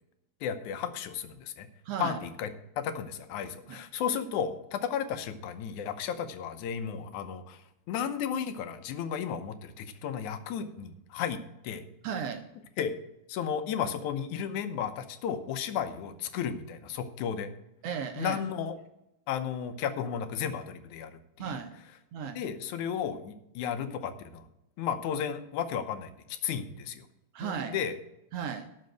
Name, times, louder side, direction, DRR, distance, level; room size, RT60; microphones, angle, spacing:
voice 1, 0.4-1.7 2.0-2.5 2.8-7.6 7.9-11.8 12.8-12.9 13.3-17.5 18.2-18.8 19.3-21.5 22.4-24.5 24.8-26.1 26.4-27.1 27.4-28.0, left 8 dB, 85° left, 9 dB, 2.3 m, -33 dB
voice 2, 1.8-2.2 3.7-3.8 12.0-12.4 17.8-18.4 21.4-21.8 22.1-22.4 27.3-27.8 28.3-28.7, right 7 dB, 70° right, 7 dB, 1.6 m, -35 dB
12.0 x 5.3 x 7.8 m, 0.87 s
omnidirectional pair, 3.3 m